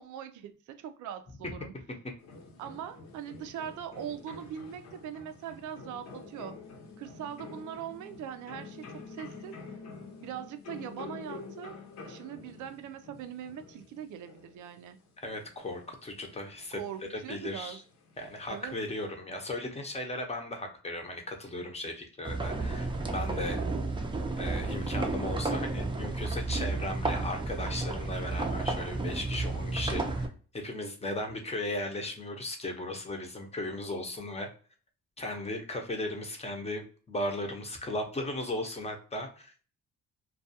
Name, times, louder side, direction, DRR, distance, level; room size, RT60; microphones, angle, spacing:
voice 1, 0.0-1.7 2.6-6.6 7.0-9.6 10.2-15.0 16.7-17.8 18.5-18.7, right 9 dB, 80° right, 0.5 m, -41 dB
sound 1, 2.2-19.0, left 4 dB, 60° left, 0.7 m, -48 dB
voice 2, 15.2-16.8 17.1-17.8 18.2-23.6 24.4-34.5 35.2-39.6, left 1 dB, 20° left, 0.7 m, -36 dB
sound 2, 22.2-30.3, right 3 dB, 15° right, 0.5 m, -32 dB
2.3 x 2.3 x 2.6 m
cardioid pair, 90°, 30 cm